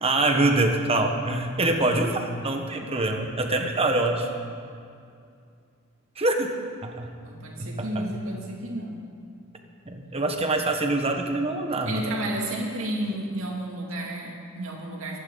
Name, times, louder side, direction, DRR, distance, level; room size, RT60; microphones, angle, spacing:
voice 1, 0.0-4.3 6.2-6.5 6.8-7.1 7.6-8.1 9.9-12.1, right 2 dB, 30° right, 3 dB, 1.4 m, -25 dB
voice 2, 7.2-9.0 11.8-15.2, right 1 dB, 70° right, -2 dB, 2.7 m, -32 dB
25.0 x 11.5 x 4.1 m, 2.4 s
head